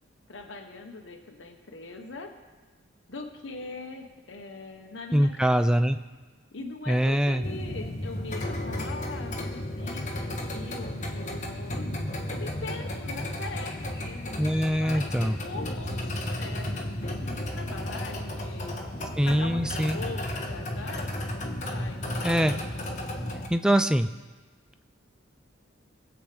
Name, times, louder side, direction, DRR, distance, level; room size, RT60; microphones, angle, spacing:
voice 1, 0.3-2.3 3.1-5.6 6.5-11.8 12.3-18.8 19.2-22.4, left 3 dB, 70° left, 4 dB, 1.1 m, -41 dB
voice 2, 5.1-6.0 6.9-7.4 14.4-15.4 19.2-20.0 22.2-22.5 23.5-24.1, equal, 5° right, 9 dB, 0.4 m, -23 dB
sound 1, 7.4-23.5, left 1 dB, 40° left, 1.3 m, -33 dB
Early morning birdsong in Edinburgh Scotland, 13.6-15.4 15.8-16.5, left 2 dB, 15° left, 4.4 m, -50 dB
22.0 x 8.0 x 3.5 m, 1.3 s
head